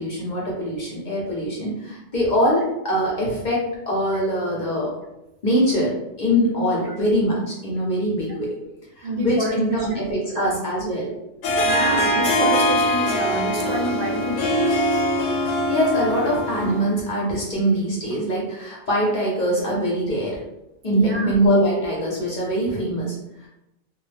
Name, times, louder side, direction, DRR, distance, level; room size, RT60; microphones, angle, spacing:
voice 1, 0.0-4.9 5.4-5.9 6.2-8.5 9.0-11.1 15.5-20.4 20.8-23.5, equal, 50° left, -4 dB, 0.6 m, -23 dB
voice 2, 9.0-9.9 10.4-10.6 11.6-14.7 20.9-21.3, right 1 dB, 70° right, 0 dB, 0.8 m, -28 dB
Harp, 11.4-16.9, equal, 90° left, 0.9 m, -22 dB
2.4 x 2.0 x 3.2 m, 0.92 s
omnidirectional pair, 1.2 m